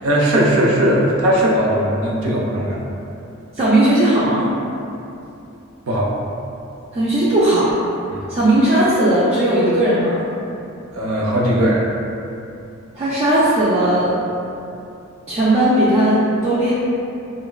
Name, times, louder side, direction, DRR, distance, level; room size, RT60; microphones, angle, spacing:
voice 1, 0.0-2.8 5.9-6.1 8.1-8.2 10.9-11.9, right 1 dB, 85° right, -4 dB, 0.5 m, -18 dB
voice 2, 3.5-4.5 6.9-7.7 8.3-10.2 13.0-14.2 15.3-16.7, right 1 dB, 30° right, -10 dB, 0.3 m, -16 dB
3.1 x 2.1 x 2.2 m, 2.7 s
head